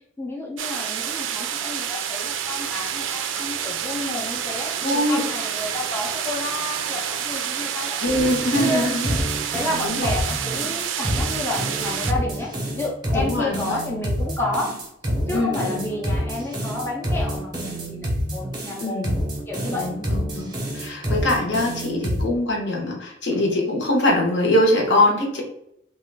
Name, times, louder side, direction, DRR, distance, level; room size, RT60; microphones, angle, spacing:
voice 1, 0.0-8.3 8.6-8.9 9.5-12.5 12.8-14.8 15.3-19.1 19.5-19.9, left 2 dB, 10° left, -3 dB, 0.4 m, -30 dB
sound 1, 0.6-12.1, right 9 dB, 80° right, 0.3 m, -28 dB
voice 2, 4.8-5.2 8.0-10.1 13.1-13.8 15.3-15.8 18.8-19.2 19.7-25.4, left 1 dB, 65° left, 0 dB, 0.8 m, -23 dB
sound 2, 8.2-22.3, equal, 20° right, 0.8 m, -27 dB
2.9 x 2.2 x 3.3 m, 0.78 s
head